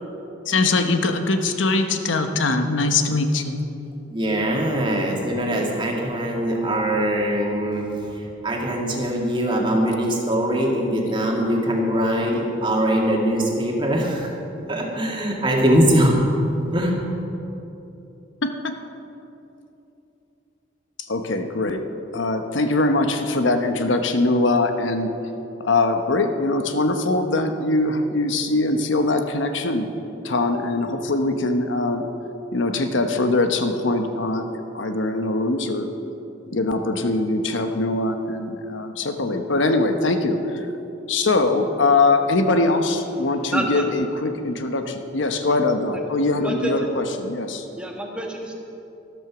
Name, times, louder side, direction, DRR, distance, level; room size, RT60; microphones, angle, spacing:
voice 1, 0.5-3.6 18.4-18.7 21.0-21.8 22.1-25.1 25.6-29.9 30.2-32.0 32.5-35.9 36.5-40.7 41.1-47.6, left 2 dB, 80° left, 6 dB, 1.0 m, -22 dB
voice 2, 4.1-7.9 8.4-14.3 14.7-16.2 16.7-16.9, equal, 25° right, -1 dB, 2.0 m, -22 dB
voice 3, 43.5-43.8 46.4-46.9 47.8-48.5, right 1 dB, 5° right, 0 dB, 1.5 m, -28 dB
13.0 x 12.5 x 6.1 m, 2.9 s
head